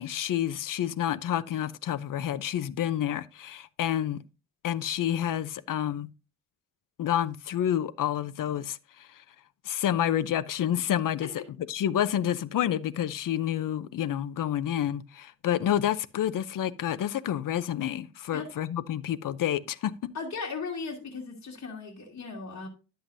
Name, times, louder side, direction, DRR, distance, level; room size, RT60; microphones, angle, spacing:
voice 1, 0.0-4.2 4.6-6.1 7.0-9.2 9.6-19.9, left 11 dB, 80° left, 0.7 m, -29 dB
voice 2, 20.1-22.7, left 4 dB, 60° left, 2.6 m, -37 dB
11.5 x 7.8 x 2.6 m
wide cardioid pair, 110°, 32 cm